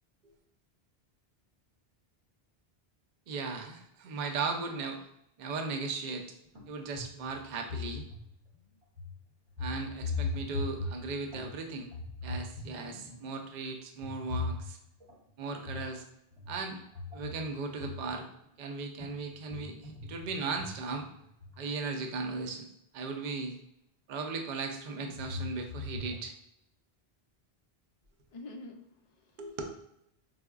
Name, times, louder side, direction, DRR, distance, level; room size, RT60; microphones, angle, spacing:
voice 1, 3.3-5.0 5.4-6.3 6.7-8.0 9.6-11.9 12.2-14.8 15.4-16.0 16.5-16.8 17.1-18.3 18.6-21.1 21.6-22.7 22.9-23.6 24.1-26.3 29.4-29.6, right 4 dB, 55° right, 4 dB, 0.6 m, -37 dB
sound 1, 6.5-6.7 7.0-8.5 9.0-9.1 9.5-11.6 11.9-13.4 14.0-15.1 15.6-16.0 16.3-18.4 19.0-21.6 22.4-22.5 23.0-23.1 24.5-26.2, left 3 dB, 30° right, 0.9 m, -39 dB
voice 2, 28.3-29.8, left 2 dB, 55° left, 4 dB, 0.4 m, -48 dB
4.6 x 2.1 x 2.2 m, 0.79 s
omnidirectional pair, 1.1 m